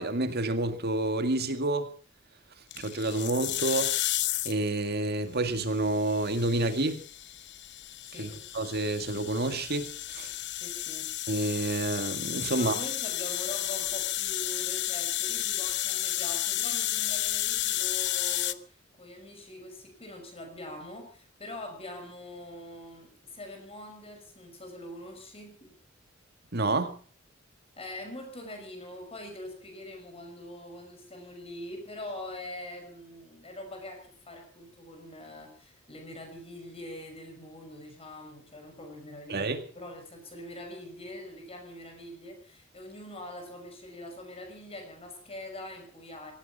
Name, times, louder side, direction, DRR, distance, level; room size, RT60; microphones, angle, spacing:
voice 1, 0.0-1.9 2.8-3.9 4.4-7.0 8.2-8.3 8.5-10.3 11.3-12.7 26.5-27.0 39.3-39.6, right 2 dB, 55° right, 2.0 m, -29 dB
sound 1, 2.7-4.7 5.7-18.5, left 13 dB, 60° left, 0.9 m, -32 dB
voice 2, 8.1-8.4 10.5-11.1 12.5-25.8 27.8-46.3, left 1 dB, 30° left, 5.8 m, -43 dB
17.5 x 14.5 x 5.6 m
head